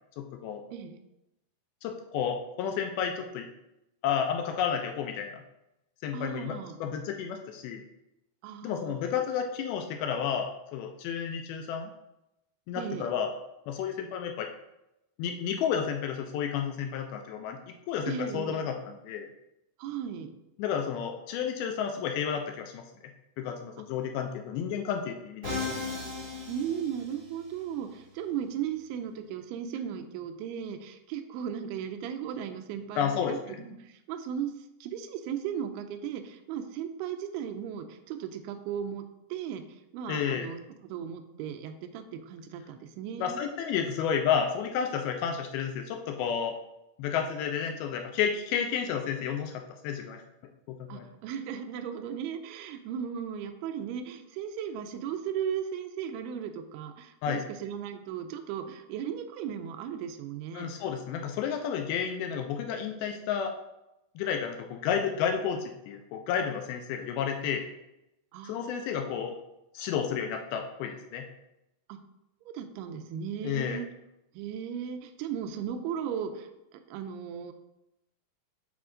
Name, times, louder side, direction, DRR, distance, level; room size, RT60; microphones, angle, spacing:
voice 1, 0.2-0.6 1.8-3.5 4.0-5.4 6.0-7.8 8.6-11.9 12.7-13.3 13.7-14.5 15.2-17.6 17.9-19.3 20.6-22.9 23.4-25.6 33.0-33.6 40.1-40.5 43.2-46.6 47.0-50.2 50.7-51.1 57.2-57.4 60.5-63.5 64.2-67.7 68.4-69.3 69.7-71.3 73.4-73.8, left 7 dB, 80° left, 4 dB, 2.3 m, -31 dB
voice 2, 6.1-6.8 8.4-9.0 12.8-13.1 18.1-18.6 19.8-20.3 26.5-34.5 34.8-39.0 39.3-40.6 40.9-43.4 50.9-60.7 68.3-69.1 71.9-72.0 72.4-73.9 74.3-77.5, right 8 dB, 80° right, 6 dB, 2.4 m, -36 dB
Musical instrument, 25.4-27.5, left 3 dB, 35° right, 1.9 m, -36 dB
8.6 x 3.6 x 3.7 m, 0.88 s
omnidirectional pair, 4.8 m